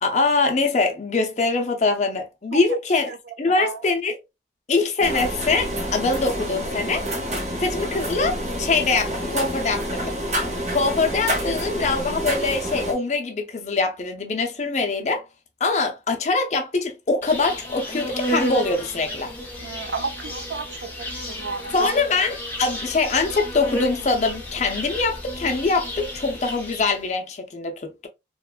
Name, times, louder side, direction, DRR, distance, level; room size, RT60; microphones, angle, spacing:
voice 1, 0.0-3.1 3.4-4.2 4.7-7.0 7.6-10.0 10.7-15.2 15.6-19.3 21.7-28.1, left 3 dB, 40° left, 0.5 m, -23 dB
voice 2, 3.4-3.8 19.6-22.0, right 4 dB, 80° right, 0.4 m, -32 dB
sound 1, 5.0-12.9, equal, 40° right, 0.8 m, -28 dB
Insect, 17.2-27.1, equal, 10° left, 0.8 m, -32 dB
2.9 x 2.2 x 2.3 m
head